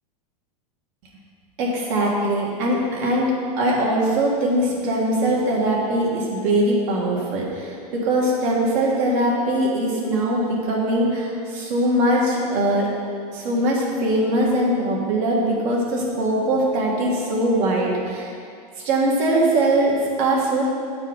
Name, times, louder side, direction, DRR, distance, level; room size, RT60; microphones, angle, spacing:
voice 1, 1.6-3.3 3.6-7.7 8.0-12.9 13.3-18.3 18.8-20.6, right 1 dB, 55° right, -3 dB, 1.7 m, -21 dB
8.5 x 4.4 x 3.9 m, 2.3 s
supercardioid pair, 135°, 20 cm